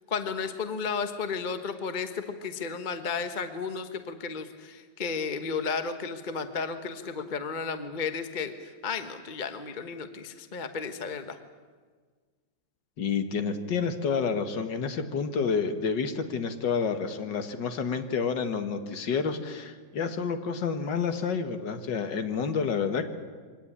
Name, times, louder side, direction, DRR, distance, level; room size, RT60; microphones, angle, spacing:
voice 1, 0.1-11.4, left 5 dB, 30° left, 8 dB, 1.1 m, -33 dB
voice 2, 13.0-23.0, left 5 dB, 65° left, 8 dB, 2.2 m, -29 dB
24.0 x 18.0 x 10.0 m, 1.5 s
omnidirectional pair, 2.1 m